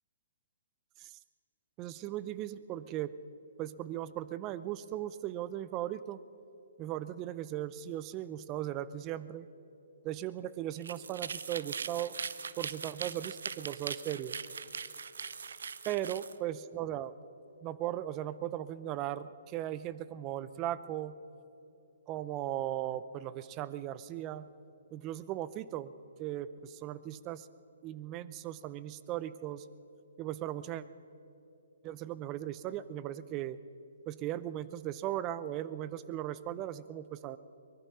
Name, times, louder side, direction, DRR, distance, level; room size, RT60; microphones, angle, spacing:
voice 1, 1.8-3.1 3.6-6.2 6.8-9.5 10.0-12.1 12.6-14.4 15.8-17.1 17.6-21.2 22.1-24.5 24.9-25.9 26.2-27.5 27.8-29.7 30.2-30.8 31.8-33.6 34.1-37.4, right 12 dB, 25° right, 16 dB, 0.6 m, -37 dB
sound 1, 10.7-16.4, right 6 dB, 70° right, 0.7 m, -41 dB
23.5 x 19.5 x 5.6 m, 3.0 s
figure-of-eight pair, 130°, 0 cm